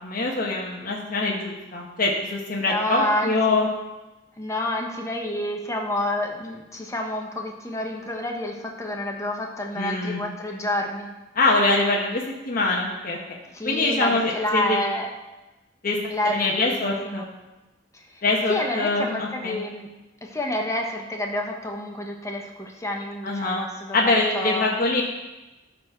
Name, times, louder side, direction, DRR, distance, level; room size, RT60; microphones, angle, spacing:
voice 1, 0.0-3.7 9.8-10.2 11.3-13.2 13.6-14.8 15.8-16.0 16.2-17.2 18.2-19.6 23.2-23.6 23.9-25.0, left 2 dB, 50° left, -2 dB, 1.1 m, -24 dB
voice 2, 2.5-3.6 4.4-11.1 13.5-15.1 16.1-17.3 17.9-19.9 20.2-24.7, left 1 dB, 15° left, 1 dB, 1.2 m, -29 dB
12.5 x 4.2 x 5.9 m, 1.1 s
head